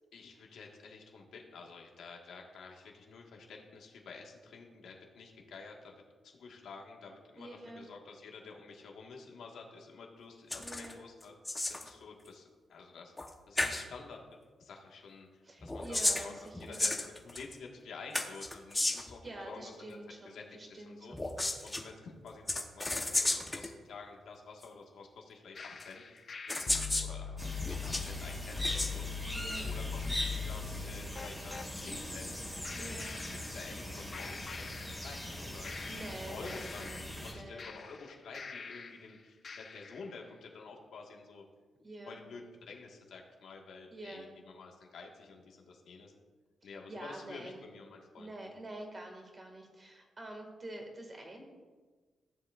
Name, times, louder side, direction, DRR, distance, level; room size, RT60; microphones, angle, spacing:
voice 1, 0.1-5.9 6.2-11.3 11.7-13.1 13.5-14.2 14.6-16.3 16.6-17.0 17.2-20.0 20.2-20.4 20.7-21.1 21.6-32.4 32.8-33.0 33.5-41.4 42.0-46.1 46.6-48.5, left 4 dB, 85° left, 0 dB, 1.5 m, -50 dB
voice 2, 7.4-7.9 10.6-11.0 15.4-16.9 19.2-21.2 29.3-29.7 32.8-33.2 35.6-37.7 41.8-42.2 43.9-44.3 46.6-47.7 48.2-51.5, right 1 dB, 30° right, 2 dB, 1.8 m, -47 dB
sound 1, 10.5-10.9 11.2-11.9 13.2-13.3 13.6-13.8 15.6-17.5 18.1-19.2 21.1-21.8 22.5-23.7 24.6-24.7 25.8-25.9 26.5-27.1 27.6-28.1 28.6-28.9, left 2 dB, 15° left, 0.8 m, -33 dB
sound 2, 25.6-31.7 32.6-33.9 34.1-35.3 35.6-39.1 39.4-40.1, left 5 dB, 45° left, 0.7 m, -42 dB
sound 3, 27.4-37.3, left 1 dB, ahead, 2.0 m, -41 dB
14.5 x 7.5 x 2.4 m, 1.4 s
cardioid pair, 110°, 0 cm